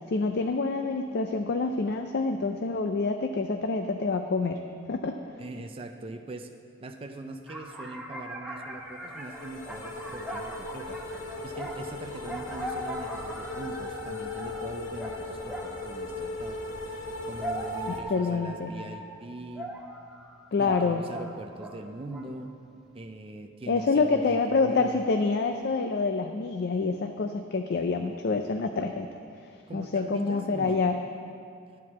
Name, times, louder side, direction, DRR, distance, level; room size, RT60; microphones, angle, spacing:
voice 1, 0.1-4.6 4.9-5.2 17.9-18.7 20.5-21.0 23.7-29.1 29.7-31.0, left 4 dB, 50° left, 5 dB, 0.4 m, -27 dB
voice 2, 5.4-6.5 6.8-11.0 11.3-19.7 20.6-22.5 22.9-25.0 29.7-30.9, right 2 dB, 25° right, 5 dB, 0.4 m, -42 dB
sound 1, 7.5-15.9 17.0-21.8 22.1-22.5, right 1 dB, ahead, 0.8 m, -39 dB
sound 2, 9.0-18.0, left 2 dB, 70° left, 0.9 m, -38 dB
11.5 x 4.7 x 7.1 m, 2.4 s
head